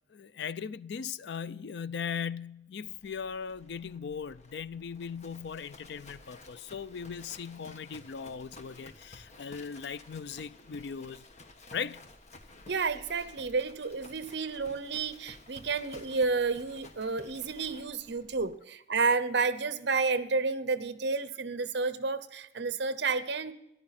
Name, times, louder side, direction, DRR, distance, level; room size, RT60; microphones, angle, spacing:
voice 1, 0.1-11.2 11.7-12.0, left 6 dB, 60° left, 0.4 m, -38 dB
Livestock farm animals working animals, 3.0-18.5, left 2 dB, 40° left, 1.3 m, -53 dB
voice 2, 12.7-23.5, right 4 dB, 65° right, 0.9 m, -30 dB
14.0 x 11.5 x 4.2 m
head